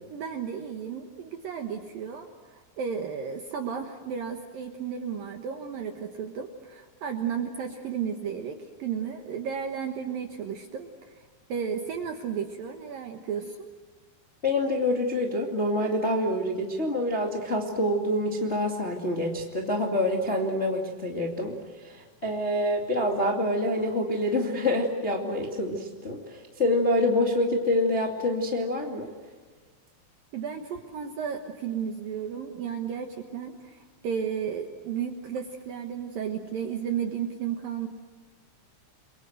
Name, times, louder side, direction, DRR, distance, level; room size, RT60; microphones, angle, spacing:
voice 1, 0.1-13.7 30.3-37.9, right 7 dB, 65° right, 4 dB, 2.3 m, -33 dB
voice 2, 14.4-21.5 21.8-29.1, left 1 dB, 30° left, 0 dB, 1.3 m, -26 dB
29.5 x 23.0 x 7.9 m, 1.4 s
omnidirectional pair, 5.7 m